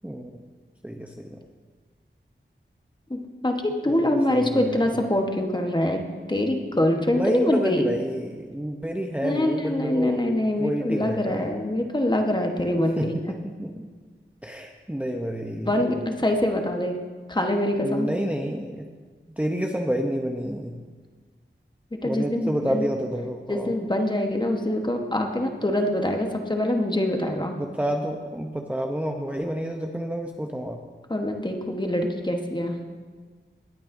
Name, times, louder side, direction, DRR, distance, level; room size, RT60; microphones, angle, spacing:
voice 1, 0.8-1.4 3.9-4.9 7.0-10.2 10.6-11.5 12.7-13.9 14.4-15.8 17.8-18.9 19.3-20.8 22.0-23.7 27.2-30.8, equal, 5° right, 2 dB, 0.6 m, -29 dB
voice 2, 3.1-6.0 6.3-7.9 9.2-13.1 15.7-16.9 17.3-18.1 22.0-22.9 23.5-27.5 31.1-32.8, left 1 dB, 20° left, 3 dB, 1.1 m, -24 dB
19.0 x 8.6 x 2.6 m, 1.5 s
wide cardioid pair, 65°, 20 cm